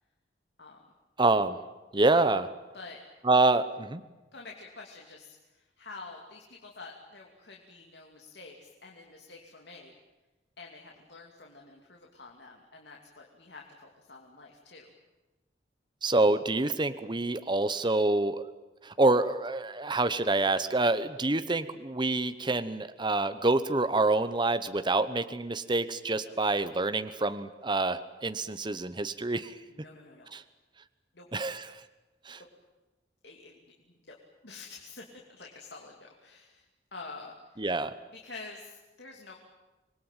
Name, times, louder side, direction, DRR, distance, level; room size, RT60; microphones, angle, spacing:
voice 1, 1.2-1.6 1.9-2.5 3.2-4.0 16.0-18.5 18.8-29.6 30.3-30.4 31.3-31.8 32.3-32.4 37.6-37.9, right 2 dB, 25° right, 11 dB, 1.0 m, -27 dB
voice 2, 4.3-9.9 10.6-14.9 26.1-26.4 29.7-30.3 31.1-31.3 33.2-34.2 34.4-37.7 38.1-39.4, left 3 dB, 70° left, 0 dB, 2.8 m, -48 dB
26.0 x 21.0 x 9.2 m, 1.1 s
head